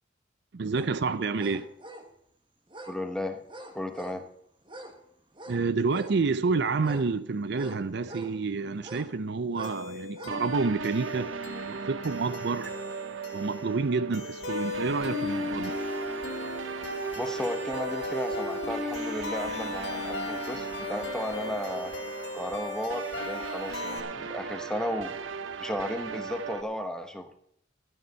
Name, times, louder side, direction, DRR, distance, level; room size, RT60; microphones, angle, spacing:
voice 1, 0.5-1.7 5.5-11.3 11.7-12.7 13.3-15.8, right 4 dB, 60° right, 0.5 m, -29 dB
sound 1, 0.7-0.9 1.4-2.1 2.7-3.0 3.5-4.2 4.6-5.0 5.3-6.2 6.8-8.3 8.8-9.1 9.5-9.8 10.1-10.4 10.9-11.0, right 1 dB, 25° right, 1.4 m, -45 dB
voice 2, 2.9-3.4 3.7-4.3 17.1-21.9 22.3-27.3, left 1 dB, 5° left, 1.0 m, -34 dB
sound 2, 9.6-24.0, left 3 dB, 60° left, 1.9 m, -37 dB
sound 3, 10.3-26.6, right 5 dB, 85° right, 0.8 m, -38 dB
12.5 x 9.5 x 5.6 m
head